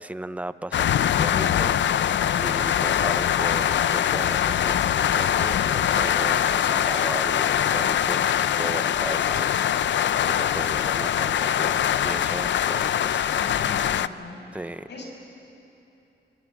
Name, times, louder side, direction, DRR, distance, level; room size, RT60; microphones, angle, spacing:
voice 1, 0.0-13.4 14.5-14.8, right 1 dB, 10° right, 13 dB, 0.7 m, -36 dB
sound 1, 0.7-14.1, left 10 dB, 90° left, 0.6 m, -23 dB
voice 2, 13.3-14.5 14.9-15.0, left 3 dB, 75° left, 1 dB, 6.2 m, -40 dB
24.5 x 22.5 x 9.6 m, 2.9 s
wide cardioid pair, 110°, 18 cm